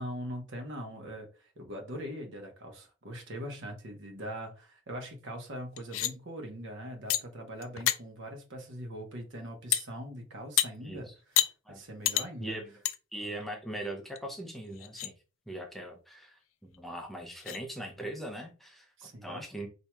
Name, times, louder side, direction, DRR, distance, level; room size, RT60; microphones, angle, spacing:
voice 1, 0.0-12.6 19.0-19.5, equal, 60° right, 0.9 m, -42 dB
sound 1, 5.8-6.1 7.1-7.2 7.6-8.0 9.7-9.8 10.6-10.7 11.4-11.5 12.0-12.3 12.8-13.0 13.4-13.5 14.2-14.3 14.7-15.1 16.7-16.8 17.4-17.6, left 13 dB, 70° left, 0.3 m, -28 dB
voice 2, 10.8-11.1 11.7-11.8 12.4-12.7 13.1-15.1 15.5-18.9 19.2-19.7, right 1 dB, ahead, 0.5 m, -40 dB
4.3 x 2.7 x 2.2 m
head